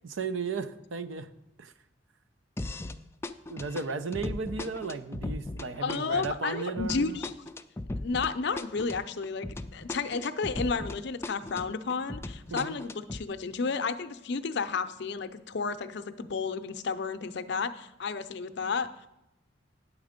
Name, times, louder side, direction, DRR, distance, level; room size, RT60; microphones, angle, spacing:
voice 1, 0.0-1.3 1.6-1.7 3.5-7.2 12.5-12.8, right 4 dB, 85° right, 11 dB, 0.6 m, -35 dB
sound 1, 2.6-3.0 3.2-11.0 11.2-13.2, left 2 dB, 15° left, 0.3 m, -37 dB
voice 2, 5.8-7.3 8.0-9.5 9.7-19.1, left 4 dB, 65° left, 11 dB, 0.6 m, -32 dB
9.5 x 7.3 x 5.0 m, 0.89 s
head